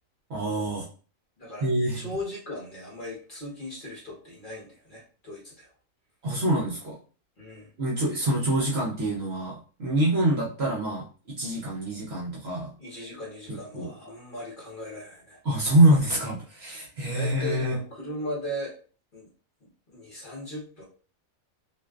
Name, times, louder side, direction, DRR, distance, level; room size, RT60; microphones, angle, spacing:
voice 1, 0.3-0.9 1.6-2.1 6.2-7.0 7.8-12.7 13.5-13.9 15.4-17.7, right 1 dB, 60° right, -4 dB, 0.7 m, -25 dB
voice 2, 1.4-5.7 7.4-7.7 12.8-15.4 17.1-18.7 19.1-19.3 19.9-20.8, left 1 dB, 40° left, -5 dB, 0.9 m, -38 dB
2.5 x 2.3 x 2.2 m, 0.39 s
omnidirectional pair, 1.5 m